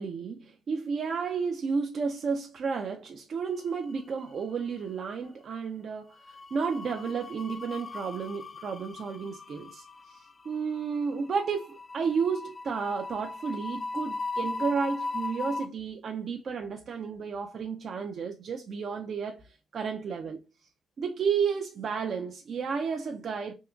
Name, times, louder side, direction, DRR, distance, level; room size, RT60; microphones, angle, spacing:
voice 1, 0.0-20.4 21.0-23.5, right 5 dB, 55° right, 0.4 m, -32 dB
sound 1, 3.6-4.4 4.7-4.9 6.1-15.7, left 3 dB, 35° left, 0.3 m, -38 dB
3.6 x 2.8 x 2.2 m
cardioid pair, 90°, 0 cm